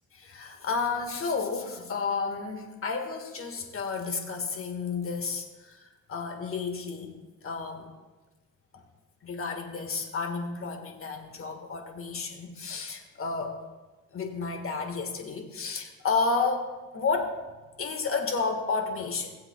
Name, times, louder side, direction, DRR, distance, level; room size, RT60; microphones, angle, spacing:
voice 1, 0.3-7.1 7.4-7.9 8.7-8.8 9.2-13.6 14.1-17.4 17.8-19.4, left 4 dB, 45° left, 4 dB, 1.7 m, -31 dB
19.0 x 7.7 x 2.3 m, 1.2 s
cardioid pair, 90°, 30 cm